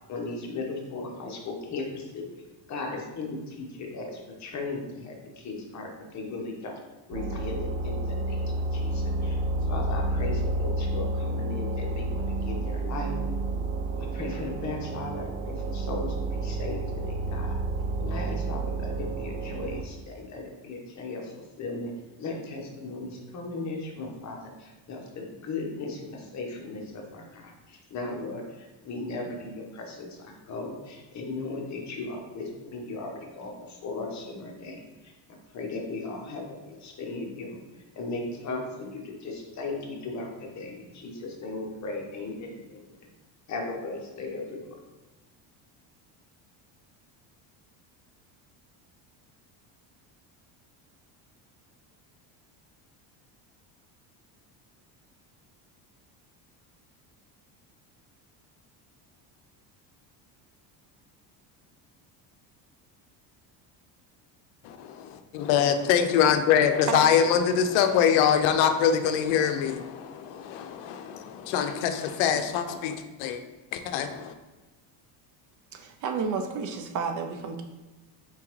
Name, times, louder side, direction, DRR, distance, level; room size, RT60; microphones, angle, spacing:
voice 1, 0.1-2.2 2.7-6.7 7.1-13.2 14.0-17.6 18.0-21.9 22.2-35.1 35.5-37.6 38.0-42.8 43.5-44.7, left 3 dB, 40° left, 1 dB, 1.0 m, -37 dB
sound 1, 7.1-19.8, right 2 dB, 75° right, 0.7 m, -30 dB
voice 2, 64.6-73.4 73.7-74.3, left 8 dB, 85° left, 7 dB, 0.6 m, -24 dB
voice 3, 75.7-77.6, right 5 dB, 45° right, 5 dB, 0.5 m, -31 dB
4.4 x 3.6 x 3.0 m, 1.2 s
cardioid pair, 130°, 45 cm